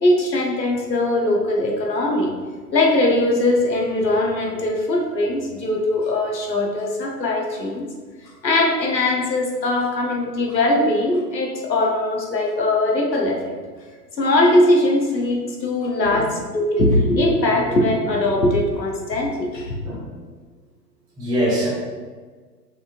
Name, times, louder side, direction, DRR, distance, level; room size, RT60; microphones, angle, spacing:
voice 1, 0.0-2.3 2.7-7.9 8.2-13.6 14.2-19.8, left 1 dB, 80° left, 0 dB, 1.0 m, -20 dB
voice 2, 19.8-20.2 21.2-21.7, equal, 10° right, -9 dB, 0.6 m, -23 dB
4.8 x 4.1 x 2.5 m, 1.5 s
figure-of-eight pair, 105°, 50 cm